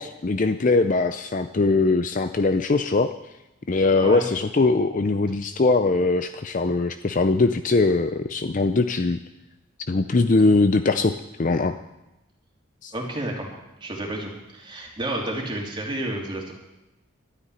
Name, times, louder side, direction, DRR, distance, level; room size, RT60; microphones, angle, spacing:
voice 1, 0.0-3.1 3.7-9.2 9.9-11.7 12.8-12.9, left 3 dB, 40° left, 9 dB, 0.5 m, -21 dB
voice 2, 12.9-13.5 13.8-16.5, right 1 dB, 25° right, -1 dB, 2.9 m, -30 dB
12.5 x 9.7 x 10.0 m, 0.98 s
head